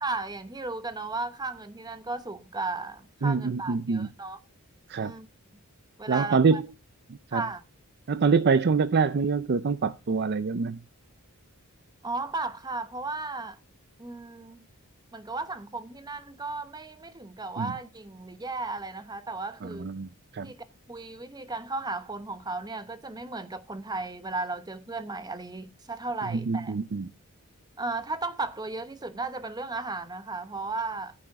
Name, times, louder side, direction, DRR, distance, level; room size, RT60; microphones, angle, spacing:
voice 1, 0.0-4.4 5.0-5.3 6.0-6.6 7.3-7.6 12.0-13.6 14.0-14.6 15.1-19.9 20.4-20.6 20.9-26.8 27.8-31.1, right 3 dB, 20° right, 1.0 m, -35 dB
voice 2, 3.2-4.1 4.9-5.1 6.1-6.6 7.3-7.4 8.1-10.8 17.6-17.7 19.6-20.1 20.3-20.5 26.3-27.1, right 5 dB, 50° right, 0.5 m, -25 dB
9.8 x 9.2 x 4.7 m
head